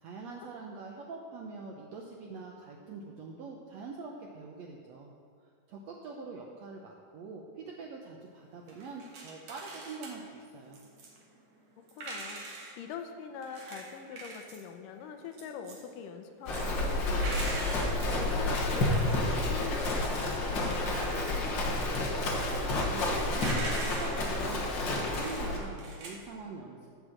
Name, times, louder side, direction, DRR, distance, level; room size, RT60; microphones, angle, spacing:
voice 1, 0.0-5.1 5.7-10.8 22.0-26.9, right 4 dB, 80° right, 0 dB, 1.5 m, -44 dB
sound 1, 8.6-12.8 13.4-26.2, right 3 dB, 55° right, 2.2 m, -44 dB
voice 2, 12.0-17.8 18.2-21.2, left 6 dB, 80° left, 6 dB, 2.2 m, -43 dB
Livestock farm animals working animals, 16.5-25.6, left 2 dB, 60° left, 1.2 m, -30 dB
12.0 x 5.4 x 7.6 m, 2.1 s
omnidirectional pair, 4.0 m